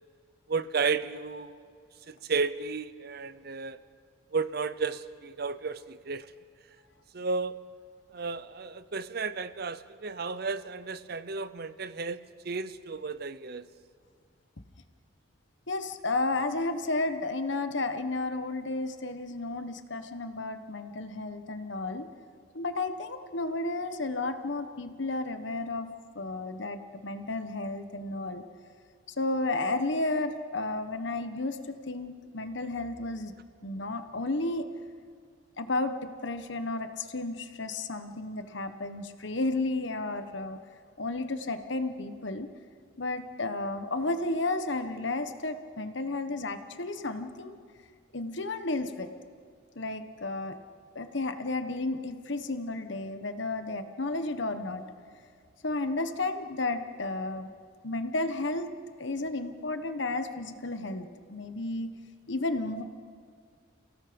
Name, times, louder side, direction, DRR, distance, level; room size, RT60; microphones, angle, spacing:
voice 1, 0.5-1.6 2.1-3.8 4.3-6.3 7.1-7.5 8.1-12.2 12.4-13.7, right 4 dB, 50° right, 14 dB, 0.6 m, -33 dB
voice 2, 15.7-22.1 22.5-25.9 26.1-28.4 29.2-33.3 33.6-34.7 35.6-40.6 41.0-42.5 43.0-47.6 48.1-49.1 49.7-50.5 50.9-54.8 55.6-57.5 57.8-58.7 59.0-61.9 62.3-62.8, left 2 dB, 60° left, 9 dB, 1.2 m, -32 dB
30.0 x 17.5 x 5.2 m, 2.2 s
head